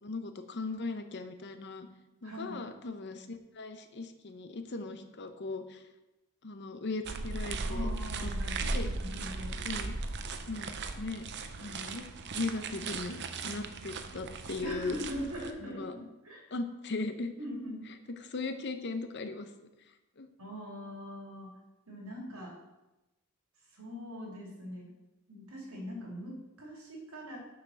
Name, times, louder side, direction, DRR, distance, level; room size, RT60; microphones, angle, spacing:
voice 1, 0.0-1.9 2.2-5.8 6.4-7.9 8.2-8.3 8.6-8.9 9.6-9.9 10.5-11.2 11.6-12.1 12.3-15.0 15.6-15.9 16.5-17.3 18.2-19.5 20.2-20.3, left 3 dB, 55° left, 8 dB, 0.8 m, -38 dB
voice 2, 2.2-2.6 7.6-9.6 14.6-16.5 17.4-17.9 20.4-21.5 21.9-22.5 23.7-24.9 25.3-27.4, equal, 85° right, -2 dB, 2.7 m, -41 dB
sound 1, 7.0-15.5, right 3 dB, 55° right, 0.6 m, -37 dB
6.7 x 5.6 x 6.3 m, 0.99 s
head